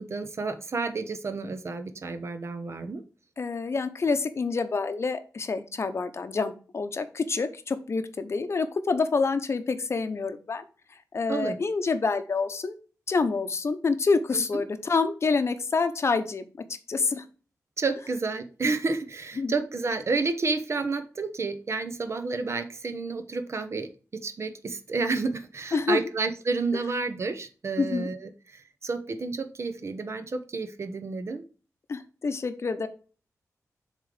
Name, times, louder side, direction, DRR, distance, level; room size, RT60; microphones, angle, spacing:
voice 1, 0.0-3.0 11.3-11.6 14.5-14.6 17.8-31.4, right 4 dB, 50° right, 9 dB, 0.8 m, -30 dB
voice 2, 3.4-10.6 11.1-12.8 13.1-16.4 16.9-17.2 19.4-19.6 25.7-26.0 27.8-28.1 31.9-32.9, left 4 dB, 50° left, 10 dB, 0.7 m, -27 dB
7.0 x 3.7 x 4.9 m, 0.37 s
wide cardioid pair, 125°, 6 cm